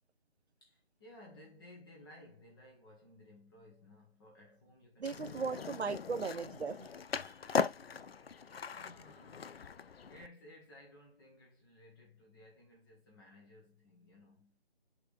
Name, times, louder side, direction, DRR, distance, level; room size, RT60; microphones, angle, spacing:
voice 1, 0.6-6.1 8.5-14.6, left 1 dB, 20° left, 1.9 m, -58 dB
Skateboard, 5.0-10.3, left 6 dB, 65° left, 0.6 m, -39 dB
voice 2, 5.0-6.9 7.2-7.7, right 5 dB, 80° right, 1.0 m, -38 dB
11.0 x 3.7 x 3.3 m
figure-of-eight pair, 160°, 32 cm